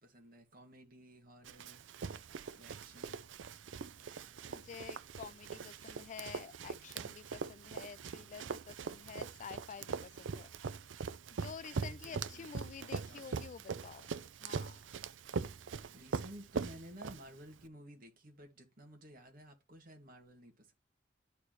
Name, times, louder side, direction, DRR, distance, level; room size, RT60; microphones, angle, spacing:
voice 1, 0.0-1.8 2.5-3.2 11.7-12.5 12.8-13.6 15.9-20.7, equal, 50° right, 2.2 m, -54 dB
Run, 1.4-17.6, right 5 dB, 80° right, 0.5 m, -42 dB
voice 2, 4.0-10.5 11.3-14.1 14.4-14.8, left 7 dB, 40° left, 0.3 m, -50 dB
12.5 x 4.3 x 3.1 m
head